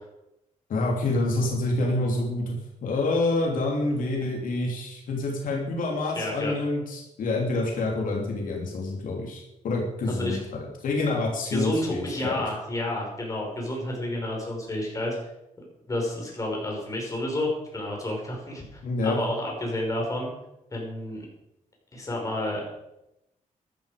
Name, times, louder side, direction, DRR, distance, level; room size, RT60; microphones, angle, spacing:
voice 1, 0.7-2.5 2.8-10.4 10.8-12.4 18.8-19.2, left 2 dB, 80° left, -1 dB, 3.1 m, -27 dB
voice 2, 6.2-6.5 10.1-10.4 11.5-15.2 15.9-20.3 20.7-21.3 21.9-22.7, left 1 dB, 25° left, -1 dB, 5.4 m, -30 dB
14.0 x 12.0 x 5.2 m, 0.87 s
wide cardioid pair, 140°, 14 cm